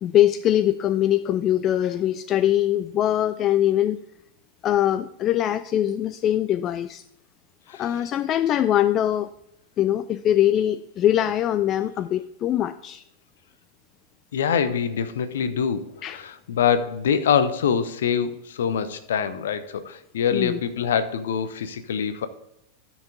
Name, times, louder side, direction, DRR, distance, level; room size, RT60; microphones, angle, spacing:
voice 1, 0.0-4.0 4.6-7.0 7.8-9.3 9.8-13.0 16.0-16.2 20.3-20.6, left 11 dB, 30° left, 14 dB, 0.3 m, -22 dB
voice 2, 14.3-22.3, left 7 dB, 60° left, 12 dB, 0.8 m, -25 dB
12.5 x 6.1 x 3.8 m, 0.80 s
figure-of-eight pair, 90°, 0 cm